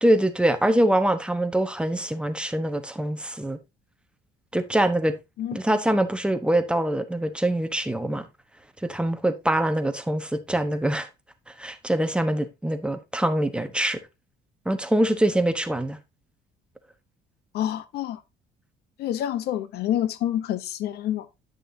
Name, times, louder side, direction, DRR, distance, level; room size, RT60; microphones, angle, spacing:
voice 1, 0.0-3.6 4.5-5.1 5.5-8.3 8.8-11.1 11.6-14.0 14.6-16.0, right 1 dB, 5° right, 1.1 m, -24 dB
voice 2, 17.5-18.2 19.0-21.3, left 11 dB, 75° left, 0.9 m, -27 dB
11.0 x 6.7 x 2.7 m
cardioid pair, 110°, 17 cm